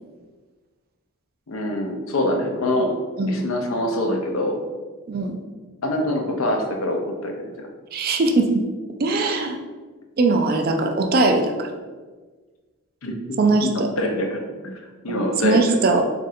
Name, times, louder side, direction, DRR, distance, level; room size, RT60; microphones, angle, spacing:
voice 1, 1.5-2.9 3.2-4.6 5.8-7.7 13.0-13.1 13.6-14.7 15.0-15.8, left 1 dB, 70° left, 2 dB, 0.6 m, -24 dB
voice 2, 5.1-5.4 7.9-8.5 9.0-9.6 10.2-11.7 13.4-13.9 15.2-16.0, right 3 dB, 45° right, 5 dB, 0.4 m, -20 dB
3.7 x 2.5 x 4.1 m, 1.4 s
head